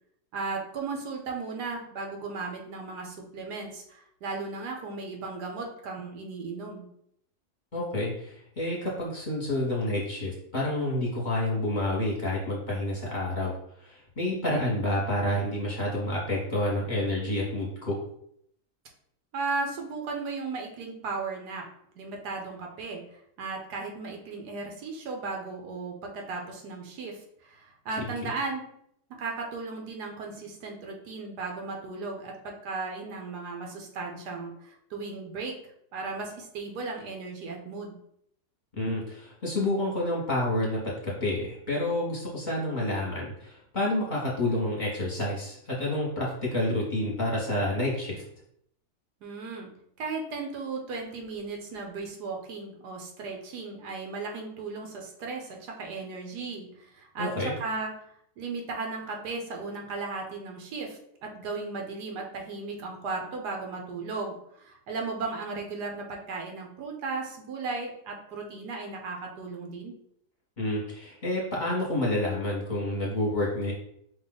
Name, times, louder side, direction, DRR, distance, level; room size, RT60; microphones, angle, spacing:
voice 1, 0.3-6.9 19.3-21.7 22.0-23.1 23.4-28.6 29.2-35.6 35.9-38.0 49.2-49.7 50.0-57.3 57.6-58.0 58.4-69.9, right 4 dB, 90° right, 1 dB, 1.5 m, -36 dB
voice 2, 7.7-13.5 13.8-18.0 38.8-48.2 57.2-57.5 70.6-73.7, left 1 dB, 30° left, -5 dB, 1.2 m, -29 dB
5.1 x 2.5 x 3.8 m, 0.71 s
omnidirectional pair, 1.7 m